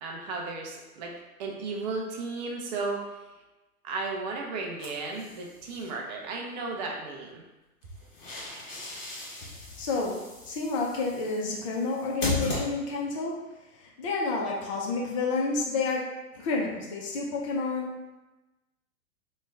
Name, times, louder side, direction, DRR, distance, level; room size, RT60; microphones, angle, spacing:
voice 1, 0.0-1.1 1.4-3.2 3.8-7.4, right 3 dB, 30° right, 0 dB, 0.5 m, -34 dB
sound 1, 4.8-5.9 7.8-13.2, left 2 dB, 40° left, 1.3 m, -37 dB
voice 2, 9.8-10.1 10.5-13.3 14.0-16.0 16.3-17.9, left 3 dB, 25° left, -2 dB, 0.4 m, -29 dB
3.1 x 2.3 x 3.2 m, 1.1 s
hypercardioid pair, 120°, 46 cm